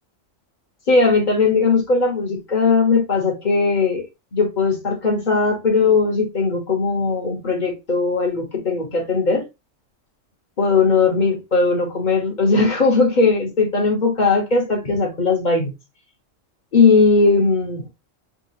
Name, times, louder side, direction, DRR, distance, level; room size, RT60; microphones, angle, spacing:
voice 1, 0.9-9.4 10.6-15.7 16.7-17.8, left 4 dB, 40° left, 0.8 m, -18 dB
3.6 x 2.3 x 2.7 m
omnidirectional pair, 1.4 m